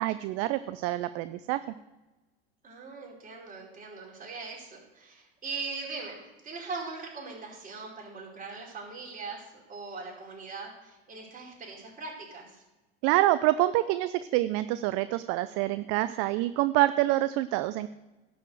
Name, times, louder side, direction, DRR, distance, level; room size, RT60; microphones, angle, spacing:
voice 1, 0.0-1.6 13.0-17.9, right 16 dB, 50° right, 14 dB, 0.5 m, -26 dB
voice 2, 2.6-12.6, right 4 dB, 25° right, -3 dB, 5.1 m, -40 dB
11.5 x 6.3 x 7.8 m, 1.1 s
hypercardioid pair, 85°, 31 cm